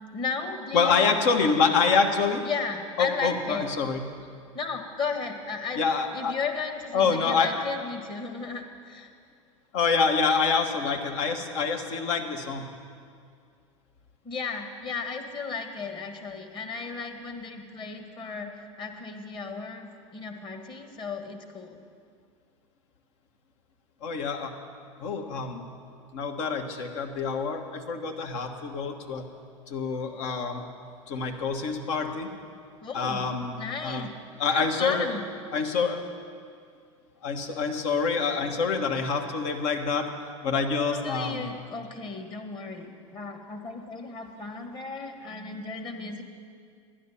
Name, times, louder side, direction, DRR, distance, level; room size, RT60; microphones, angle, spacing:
voice 1, 0.1-1.0 2.4-3.7 4.5-5.9 6.1-9.1 14.2-18.5 18.8-21.8 32.8-33.2 33.6-34.1 34.5-35.2 40.5-40.6 40.9-46.2, left 4 dB, 30° left, 4 dB, 1.4 m, -35 dB
voice 2, 0.7-2.4 3.0-4.1 5.8-6.3 6.9-7.6 9.7-12.7 24.0-24.5 25.0-25.6 26.1-29.2 29.7-30.6 31.1-32.3 32.9-33.6 33.8-34.1 34.4-35.1 35.5-36.0 37.2-40.1 40.4-41.5, left 5 dB, 65° left, 4 dB, 1.2 m, -26 dB
12.0 x 9.9 x 5.7 m, 2.2 s
hypercardioid pair, 90°, 17 cm